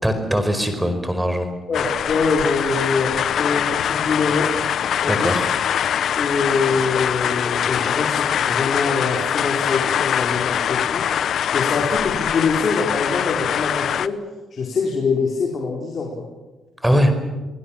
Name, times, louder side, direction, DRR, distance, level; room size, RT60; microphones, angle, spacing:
voice 1, 0.0-1.5 5.1-5.5 16.8-17.1, equal, 5° right, 8 dB, 5.0 m, -20 dB
sound 1, 1.7-14.1, left 9 dB, 65° left, 0.8 m, -23 dB
voice 2, 1.7-4.5 5.0-5.5 6.2-14.2 14.5-16.2, left 4 dB, 50° left, -1 dB, 4.8 m, -24 dB
30.0 x 20.0 x 7.5 m, 1.2 s
cardioid pair, 90°, 0 cm